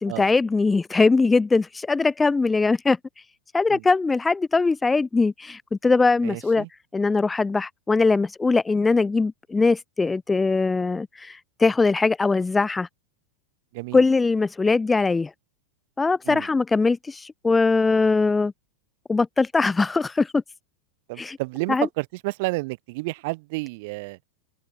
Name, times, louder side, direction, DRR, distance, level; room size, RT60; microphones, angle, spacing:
voice 1, 0.0-3.0 3.5-6.7 6.9-12.9 13.9-15.3 16.0-18.5 19.1-20.4 21.2-21.4 21.7-21.9, left 3 dB, 10° left, 0.4 m, -21 dB
voice 2, 6.2-6.7 13.7-14.0 16.3-16.5 21.1-24.2, right 25 dB, 50° right, 1.0 m, -30 dB
figure-of-eight pair, 90°, 0 cm